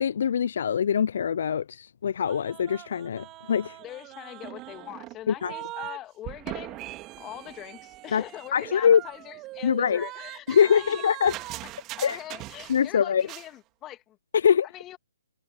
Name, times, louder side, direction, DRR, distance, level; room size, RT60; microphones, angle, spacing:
voice 1, 0.0-3.8 5.3-5.5 8.1-8.2 8.5-9.0 9.6-10.0 10.5-11.3 12.0-12.2 12.7-13.3 14.3-14.7, left 8 dB, 55° left, 0.5 m, -23 dB
sound 1, 2.3-6.0 6.2-12.9 13.2-13.5, right 18 dB, 25° right, 2.1 m, -41 dB
voice 2, 3.8-6.9 7.2-11.3 11.6-11.7 12.0-14.2 14.6-15.0, left 14 dB, 20° left, 2.0 m, -42 dB
figure-of-eight pair, 140°, 0 cm